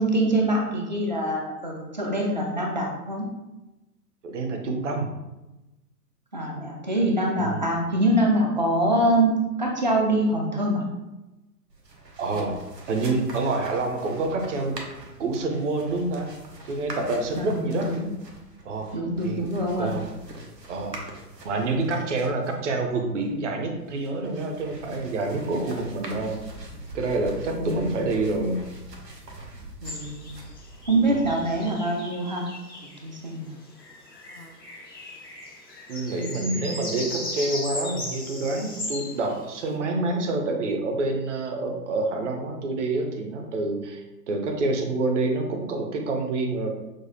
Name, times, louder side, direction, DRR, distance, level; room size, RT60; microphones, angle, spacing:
voice 1, 0.0-3.3 6.3-9.3 9.6-10.8 17.4-18.1 18.9-19.9 27.5-28.1 29.8-30.3 30.9-32.5 33.0-33.5, right 1 dB, 30° right, 0 dB, 0.4 m, -24 dB
voice 2, 4.2-5.1 7.4-7.6 12.2-12.6 12.9-14.8 15.2-16.3 16.7-17.9 18.6-19.5 19.8-20.0 20.7-21.0 21.4-26.4 26.9-28.6 31.1-31.3 35.9-46.7, right 2 dB, 50° right, 3 dB, 0.7 m, -27 dB
sound 1, 11.7-31.6, right 2 dB, 85° right, 0.9 m, -44 dB
sound 2, 29.8-33.0 33.8-39.7, left 1 dB, 85° left, 1.3 m, -37 dB
6.2 x 2.2 x 2.6 m, 1.0 s
figure-of-eight pair, 115°, 48 cm